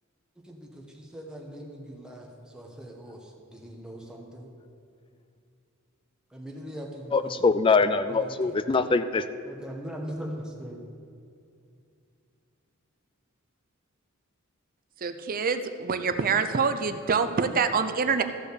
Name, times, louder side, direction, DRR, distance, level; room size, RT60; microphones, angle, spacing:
voice 1, 0.4-4.5 6.3-7.4 8.0-8.5 9.5-10.8, equal, 5° right, -1 dB, 1.2 m, -41 dB
voice 2, 7.1-9.2, left 4 dB, 25° left, 12 dB, 0.4 m, -23 dB
voice 3, 15.0-18.2, right 5 dB, 45° right, 10 dB, 0.5 m, -26 dB
14.0 x 5.0 x 6.8 m, 2.5 s
head